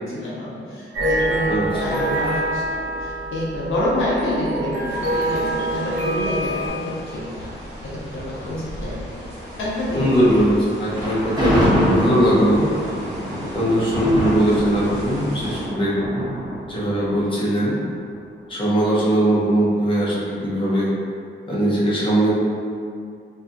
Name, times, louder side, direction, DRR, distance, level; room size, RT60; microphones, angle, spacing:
voice 1, 0.1-7.5 7.8-9.1 9.5-10.1, left 1 dB, 80° left, -8 dB, 0.7 m, -27 dB
sound 1, 0.9-6.7, right 1 dB, 70° right, 0.7 m, -25 dB
voice 2, 1.5-1.8 9.9-12.6 13.5-16.0 16.7-17.8 18.5-20.9 21.5-22.3, right 1 dB, 25° left, -7 dB, 0.6 m, -20 dB
sound 2, 4.8-15.6, equal, 55° right, 1.0 m, -36 dB
Thunder, 10.9-18.1, equal, 20° right, 0.7 m, -25 dB
2.7 x 2.5 x 2.3 m, 2.3 s
wide cardioid pair, 145°, 20 cm